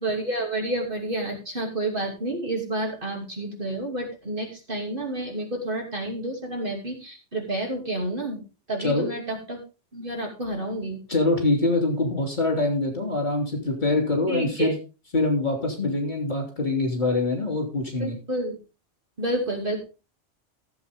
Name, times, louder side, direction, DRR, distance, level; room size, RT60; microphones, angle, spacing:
voice 1, 0.0-8.4 8.7-9.6 9.9-11.0 14.3-14.7 18.0-18.6 19.2-19.8, right 1 dB, 45° right, 1 dB, 2.9 m, -30 dB
voice 2, 11.1-14.8 15.1-18.1, left 2 dB, 40° left, 2 dB, 3.3 m, -24 dB
15.0 x 7.8 x 3.6 m, 0.31 s
omnidirectional pair, 1.2 m